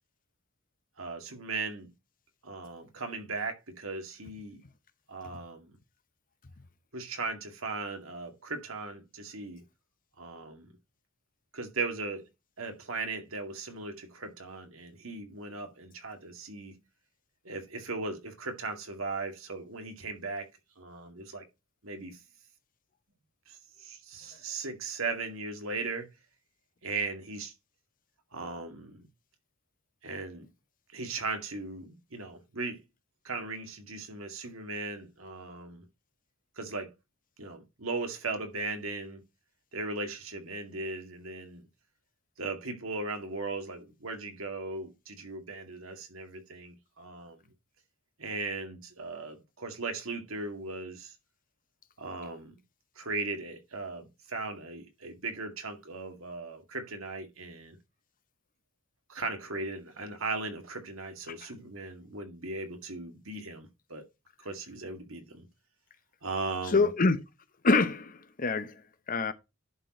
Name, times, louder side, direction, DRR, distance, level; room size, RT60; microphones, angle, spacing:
voice 1, 1.0-1.9 2.4-4.6 5.1-5.7 6.9-9.6 10.2-10.7 11.5-12.3 12.6-16.8 17.4-20.5 20.8-21.4 21.8-22.2 23.5-26.1 26.8-27.5 28.3-29.0 30.0-30.5 30.9-32.8 33.2-35.8 36.6-36.9 37.4-39.2 39.7-41.6 42.4-47.4 48.2-51.1 52.0-52.6 53.0-57.8 59.1-64.1 64.4-65.5 66.2-66.9, right 3 dB, 75° right, 2.2 m, -38 dB
voice 2, 66.7-67.2 67.6-68.7 69.1-69.3, left 3 dB, 40° left, 0.9 m, -25 dB
11.0 x 4.6 x 4.3 m
head